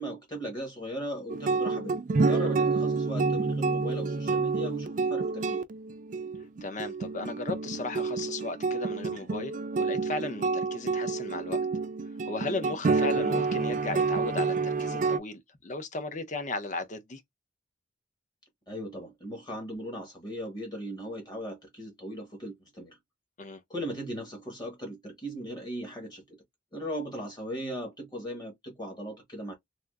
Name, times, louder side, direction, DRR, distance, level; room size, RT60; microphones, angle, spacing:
voice 1, 0.0-5.6 13.1-13.4 18.7-23.0 23.7-26.4 26.7-29.5, right 1 dB, 20° left, 1.1 m, -38 dB
sound 1, 1.3-15.2, right 4 dB, 45° right, 0.4 m, -28 dB
voice 2, 6.6-11.6 12.2-17.2 23.4-23.6, left 3 dB, 40° left, 0.7 m, -36 dB
3.5 x 2.5 x 2.3 m
head